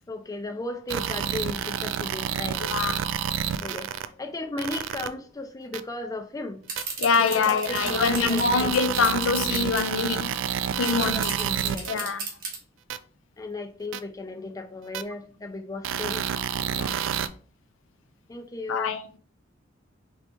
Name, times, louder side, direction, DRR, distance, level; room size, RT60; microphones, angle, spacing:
voice 1, 0.1-2.6 3.6-6.6 7.1-8.8 10.8-12.1 13.4-16.3 18.3-19.0, left 2 dB, 20° left, 0.4 m, -35 dB
sound 1, 0.9-4.1 4.6-5.1 5.7-5.8 6.8-6.9 7.6-11.9 12.9-13.0 13.9-14.0 14.9-15.0 15.8-17.3, right 9 dB, 80° right, 0.3 m, -29 dB
voice 2, 2.6-3.0 7.0-10.3 10.8-11.3 11.9-12.2 16.8-17.0 18.7-19.0, left 5 dB, 80° left, 0.5 m, -24 dB
sound 2, 6.7-9.9 10.3-10.4 10.6-12.6, right 5 dB, 45° right, 1.1 m, -34 dB
4.3 x 3.2 x 2.8 m
head